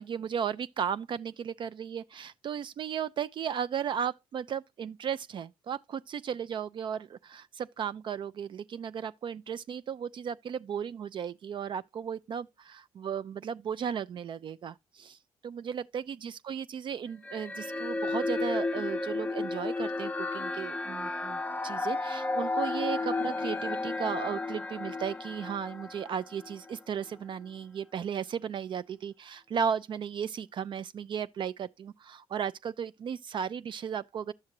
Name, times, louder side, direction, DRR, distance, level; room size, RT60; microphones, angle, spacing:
voice 1, 0.0-34.3, right 8 dB, 50° right, 0.3 m, -35 dB
sound 1, 17.2-26.7, left 3 dB, 15° left, 0.6 m, -33 dB
10.5 x 6.4 x 2.9 m
supercardioid pair, 60°, 10 cm